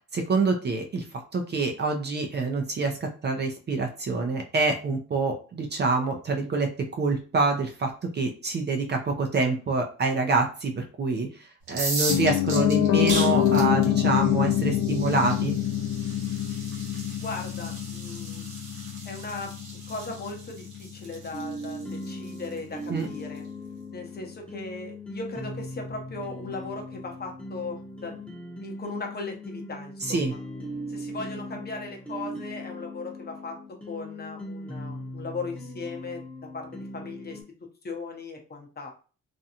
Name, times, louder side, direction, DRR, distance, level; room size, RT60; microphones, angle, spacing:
voice 1, 0.1-1.0 1.3-11.3 11.7-15.6 22.9-23.1 30.0-30.3, right 3 dB, 35° right, 3 dB, 0.5 m, -26 dB
sound 1, 11.6-23.4, right 2 dB, 70° right, 1.1 m, -37 dB
Piano, 12.1-22.1 22.4-22.5, left 11 dB, 65° left, 0.5 m, -26 dB
voice 2, 17.1-18.5 19.0-19.5 19.9-23.4 23.9-28.2 28.6-30.4 30.9-33.6 33.9-36.2 36.5-37.4 37.8-38.9, left 3 dB, 35° left, 2 dB, 0.8 m, -37 dB
sound 2, 21.3-37.4, equal, 5° left, 0.8 m, -39 dB
2.6 x 2.2 x 2.8 m, 0.37 s
cardioid pair, 90°, 30 cm